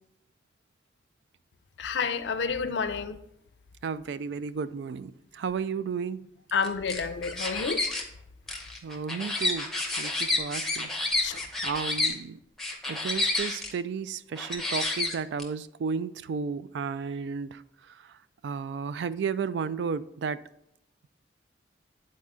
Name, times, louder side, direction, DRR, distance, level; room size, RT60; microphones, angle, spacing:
voice 1, 1.8-3.2 6.5-7.8 11.2-11.4, left 5 dB, 80° left, 11 dB, 0.5 m, -29 dB
voice 2, 3.8-6.2 8.8-9.7 10.0-10.9 11.6-12.4 12.8-17.6 18.0-18.1 18.4-20.4, right 6 dB, 75° right, 15 dB, 0.3 m, -33 dB
sound 1, 6.6-8.0 8.5-12.1 12.6-13.7 14.4-15.4, left 2 dB, ahead, 0.7 m, -29 dB
8.6 x 4.3 x 3.6 m, 0.79 s
head